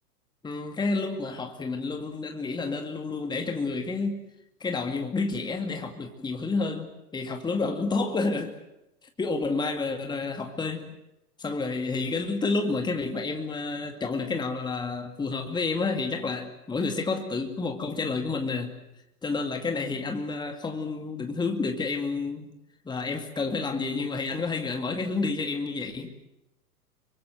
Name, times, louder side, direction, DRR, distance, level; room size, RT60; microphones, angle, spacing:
voice 1, 0.4-4.2 4.6-8.6 9.2-10.9 11.4-18.8 19.2-22.5 22.9-26.1, left 3 dB, 10° left, 2.2 m, -30 dB
26.5 x 23.5 x 7.9 m
figure-of-eight pair, 105°, 46 cm